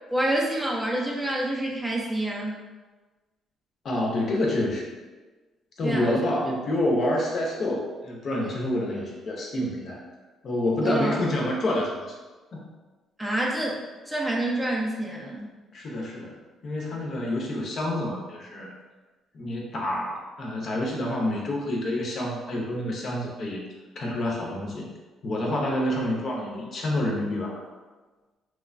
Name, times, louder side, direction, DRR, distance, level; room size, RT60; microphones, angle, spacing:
voice 1, 0.1-2.6 5.8-6.2 10.8-11.2 13.2-13.8 14.1-15.5, right 1 dB, 10° right, -2 dB, 0.4 m, -27 dB
voice 2, 3.8-4.9 5.8-10.0 10.4-12.1 12.5-12.7 15.7-16.4 16.6-18.7 19.3-23.6 24.0-24.9 25.2-27.6, left 1 dB, 50° left, -1 dB, 0.6 m, -28 dB
2.9 x 2.1 x 2.4 m, 1.3 s
cardioid pair, 115°, 0 cm